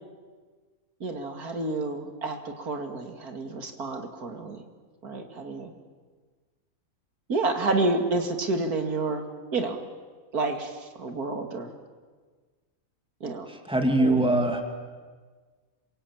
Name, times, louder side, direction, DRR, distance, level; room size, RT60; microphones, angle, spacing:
voice 1, 1.0-4.6 5.0-5.7 7.3-9.2 9.5-9.8 10.3-11.7 13.2-13.5 14.0-14.3, right 3 dB, 90° right, 5 dB, 2.8 m, -29 dB
voice 2, 13.5-14.6, right 1 dB, 5° right, 4 dB, 2.7 m, -23 dB
27.0 x 24.0 x 8.8 m, 1.5 s
omnidirectional pair, 1.6 m